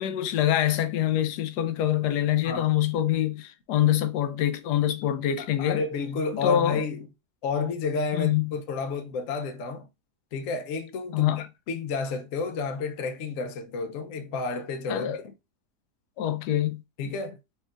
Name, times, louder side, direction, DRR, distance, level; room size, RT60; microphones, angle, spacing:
voice 1, 0.0-5.8 6.4-6.8 8.1-8.5 11.1-11.4 14.9-15.2 16.2-16.8, left 11 dB, 80° left, 1.2 m, -25 dB
voice 2, 5.6-7.1 7.4-9.9 10.3-15.2 17.0-17.4, left 4 dB, 65° left, 1.0 m, -31 dB
4.4 x 3.2 x 2.4 m
omnidirectional pair, 1.7 m